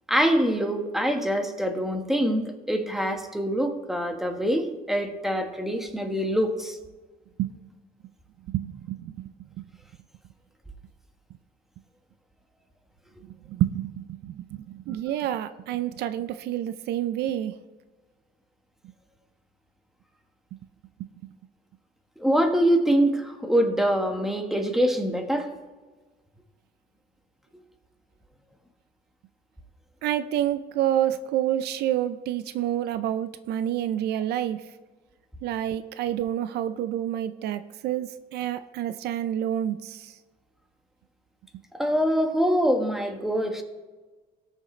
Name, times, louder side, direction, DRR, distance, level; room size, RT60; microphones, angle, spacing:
voice 1, 0.1-6.8 22.2-25.5 41.7-43.6, equal, ahead, 4 dB, 1.4 m, -24 dB
voice 2, 8.5-9.7 13.5-17.5 30.0-34.6 35.4-40.1, right 11 dB, 75° right, 12 dB, 0.5 m, -28 dB
18.5 x 6.5 x 3.2 m, 1.3 s
cardioid pair, 110°, 17 cm